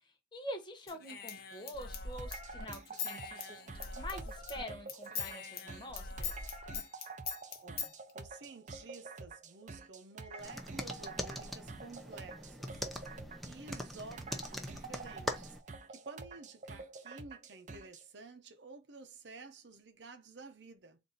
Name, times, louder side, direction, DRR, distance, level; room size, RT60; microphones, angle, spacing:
voice 1, 0.3-6.3, equal, 25° left, 1.1 m, -46 dB
Human voice / Scissors, 0.9-4.6 4.9-7.9, left 6 dB, 60° left, 0.9 m, -42 dB
sound 1, 2.2-18.1, right 4 dB, 45° right, 0.5 m, -49 dB
voice 2, 7.6-13.2 13.4-21.0, right 3 dB, 80° right, 0.8 m, -52 dB
sound 2, 10.4-15.6, equal, ahead, 0.6 m, -42 dB
3.9 x 2.7 x 3.9 m
head